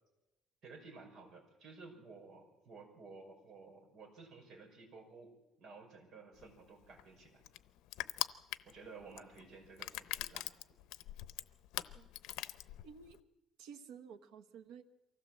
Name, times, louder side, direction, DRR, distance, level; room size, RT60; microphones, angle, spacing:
voice 1, 0.6-7.4 8.6-10.5, right 4 dB, 50° right, 1 dB, 5.8 m, -54 dB
Crushing, 6.4-13.2, left 15 dB, 85° left, 0.7 m, -43 dB
voice 2, 12.8-13.2 13.6-14.8, right 7 dB, 90° right, 8 dB, 1.2 m, -52 dB
24.0 x 16.0 x 7.5 m, 0.99 s
cardioid pair, 160°, 0 cm